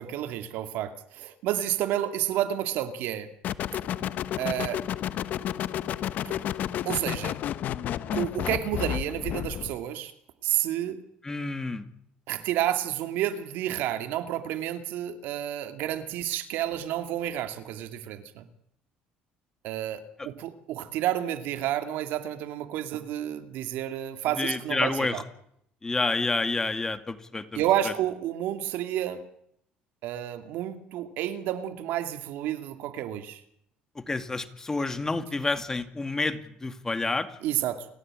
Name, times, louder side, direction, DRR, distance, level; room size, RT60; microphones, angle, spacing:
voice 1, 0.0-3.3 4.4-4.8 6.2-6.4 6.8-7.4 8.1-10.1 10.4-11.0 12.3-18.4 19.6-25.2 27.5-29.2 30.0-33.4 37.4-37.9, right 12 dB, 75° right, 9 dB, 2.5 m, -30 dB
sound 1, 3.4-9.8, left 11 dB, 55° left, 1.1 m, -31 dB
voice 2, 11.2-11.9 24.4-25.2 25.8-27.9 34.0-37.3, left 3 dB, 15° left, 10 dB, 2.3 m, -29 dB
29.5 x 14.5 x 9.0 m, 0.72 s
cardioid pair, 115°, 3 cm